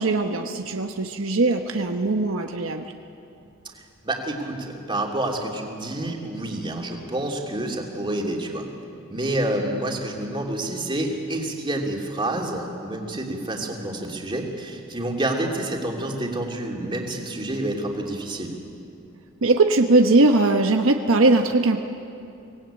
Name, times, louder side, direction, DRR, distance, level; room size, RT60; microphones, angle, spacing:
voice 1, 0.0-2.9 19.4-21.8, right 2 dB, 75° right, 5 dB, 1.1 m, -20 dB
voice 2, 4.0-8.7 9.1-18.5, right 1 dB, 25° right, 0 dB, 2.9 m, -28 dB
24.5 x 18.5 x 8.9 m, 2.7 s
head